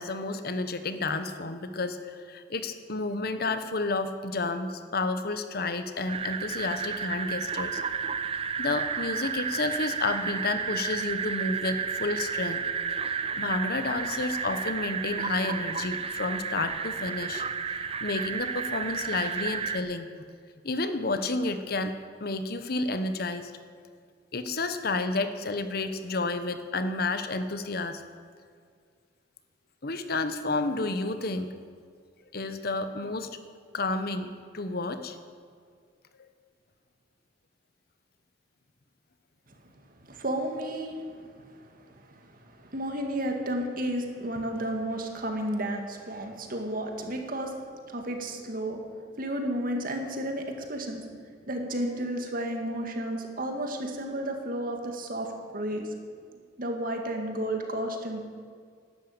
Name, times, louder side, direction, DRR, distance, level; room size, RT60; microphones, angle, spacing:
voice 1, 0.0-7.8 8.6-12.6 13.0-17.4 18.0-20.1 20.6-21.9 22.2-23.5 24.3-28.0 29.8-31.5 32.3-33.4 33.7-35.2, left 3 dB, 55° left, 9 dB, 1.0 m, -31 dB
sound 1, 6.1-19.8, right 6 dB, 30° right, 0.7 m, -32 dB
voice 2, 40.1-47.6 47.9-48.8 49.2-51.0 51.5-55.3 55.5-55.8 56.6-58.2, right 1 dB, 50° right, 3 dB, 2.1 m, -32 dB
12.0 x 12.0 x 8.8 m, 2.1 s
head